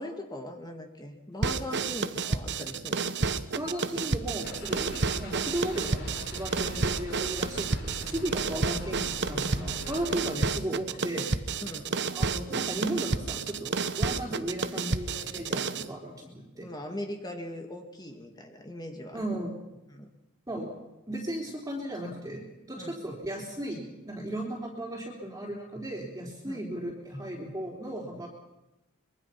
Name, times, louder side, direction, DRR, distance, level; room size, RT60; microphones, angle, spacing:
voice 1, 0.0-3.2 11.6-12.0 16.6-19.2 19.9-20.1 22.8-23.0 26.4-26.7, left 1 dB, 20° left, 4 dB, 2.1 m, -40 dB
sound 1, 1.4-15.9, right 4 dB, 55° right, 1.1 m, -31 dB
voice 2, 3.5-11.3 12.1-16.7 19.1-19.5 20.5-20.7 21.1-28.3, right 1 dB, 15° right, -2 dB, 3.8 m, -35 dB
sound 2, 4.4-10.1, left 1 dB, 50° left, 5.9 m, -41 dB
25.0 x 23.5 x 5.9 m, 0.96 s
head